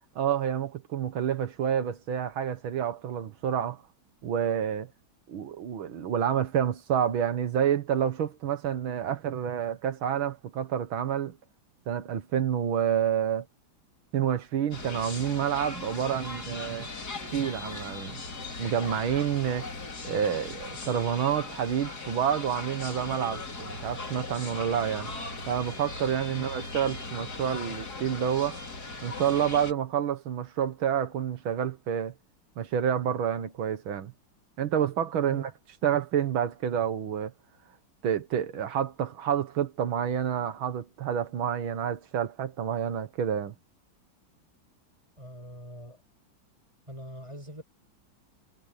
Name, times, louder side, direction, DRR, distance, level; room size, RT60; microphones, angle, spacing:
voice 1, 0.2-3.8 4.2-4.9 5.3-11.4 11.9-13.5 14.1-16.9 17.3-18.2 18.6-19.7 20.0-25.1 25.5-28.6 29.0-32.1 32.6-34.1 34.6-35.5 35.8-37.3 38.0-43.5, right 9 dB, 90° right, 2.2 m, -28 dB
sound 1, 14.7-29.7, left 3 dB, 50° left, 3.7 m, -39 dB
voice 2, 45.2-46.0 46.9-47.6, equal, 15° right, 7.7 m, -43 dB
omnidirectional pair, 2.2 m